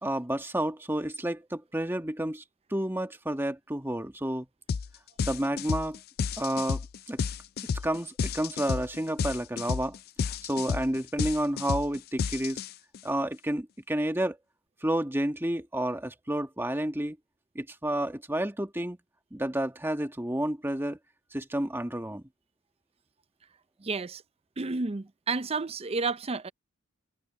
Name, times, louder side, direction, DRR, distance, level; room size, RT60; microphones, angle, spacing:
voice 1, 0.0-2.4 2.7-4.5 5.2-6.0 6.4-7.2 7.8-9.9 10.2-12.6 13.0-14.4 14.8-17.2 17.5-19.0 19.3-21.0 21.3-22.2, right 1 dB, 10° right, 1.7 m, -30 dB
sound 1, 4.7-4.9 5.2-13.0, left 6 dB, 50° left, 0.4 m, -31 dB
voice 2, 23.8-24.2 24.6-26.5, right 4 dB, 30° right, 0.5 m, -31 dB
head